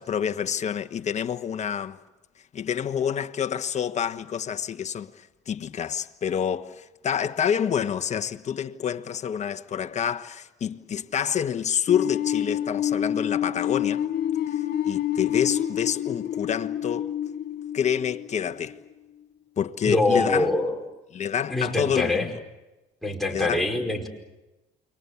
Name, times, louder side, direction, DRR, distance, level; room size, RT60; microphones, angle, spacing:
voice 1, 0.0-2.0 2.5-14.0 14.9-17.1 17.7-18.8 19.6-20.5 21.1-22.3 23.3-23.6, left 8 dB, 45° left, 1.3 m, -28 dB
sound 1, 11.9-18.7, left 10 dB, 60° left, 3.0 m, -28 dB
voice 2, 19.8-20.7 21.5-22.3 23.0-24.1, left 2 dB, ahead, 5.1 m, -24 dB
29.0 x 24.0 x 7.2 m
cardioid pair, 110°, 17 cm